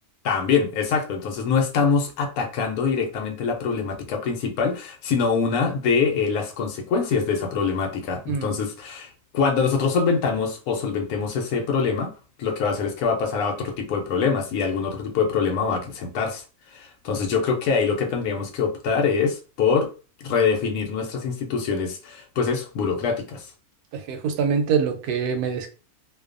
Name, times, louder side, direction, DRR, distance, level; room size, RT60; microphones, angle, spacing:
voice 1, 0.2-12.1 12.4-16.4 16.7-19.9 20.2-23.5, left 5 dB, 80° left, 1.1 m, -24 dB
voice 2, 8.3-8.6 17.1-17.3 23.9-25.7, right 6 dB, 85° right, 1.1 m, -25 dB
2.6 x 2.2 x 2.4 m
omnidirectional pair, 1.6 m